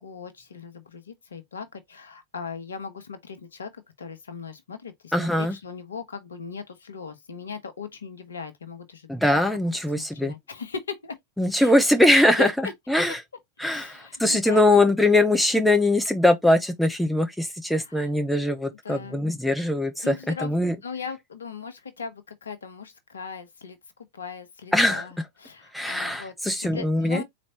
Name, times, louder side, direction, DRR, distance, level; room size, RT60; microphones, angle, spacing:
voice 1, 0.0-9.1 9.7-11.2 11.6-11.7 12.1-12.7 13.1-13.2 13.7-14.7 17.8-18.1 18.4-18.5 18.8-19.2 20.0-20.5 20.8-23.8 24.1-26.3 26.6-27.2, left 6 dB, 70° left, 1.0 m, -38 dB
voice 2, 5.1-5.6 9.1-10.3 11.4-12.5 12.9-13.2 13.6-20.8 24.7-25.0 25.7-27.2, left 1 dB, ahead, 0.8 m, -21 dB
4.3 x 3.1 x 2.8 m
figure-of-eight pair, 90°, 0 cm